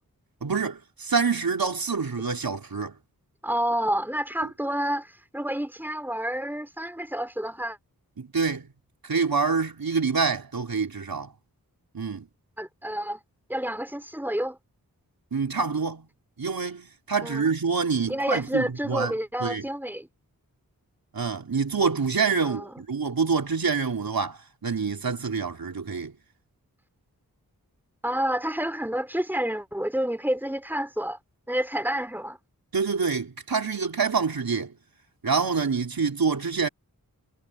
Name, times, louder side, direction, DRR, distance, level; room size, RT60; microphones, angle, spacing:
voice 1, 0.4-3.0 8.2-8.7 9.0-11.3 11.9-12.3 15.3-16.1 16.4-19.1 19.4-19.7 21.1-26.1 32.7-34.7 35.2-36.7, right 5 dB, 75° right, 4.2 m, -26 dB
voice 2, 3.4-7.8 12.6-13.2 13.5-14.6 17.2-17.5 18.1-20.1 22.4-22.8 28.0-31.2 31.5-32.4, right 1 dB, 5° right, 4.0 m, -29 dB
cardioid pair, 45°, 36 cm